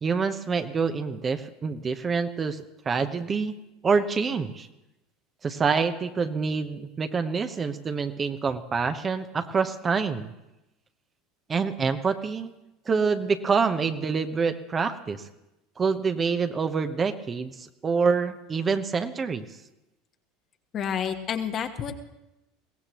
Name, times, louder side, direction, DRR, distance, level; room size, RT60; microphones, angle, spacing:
voice 1, 0.0-3.6 3.8-4.7 5.4-10.3 11.5-12.5 12.9-15.2 15.8-19.5, right 5 dB, 30° right, 9 dB, 0.9 m, -26 dB
voice 2, 20.7-21.9, left 8 dB, 40° left, 6 dB, 1.3 m, -29 dB
22.0 x 17.0 x 3.1 m, 0.95 s
hypercardioid pair, 80°, 0 cm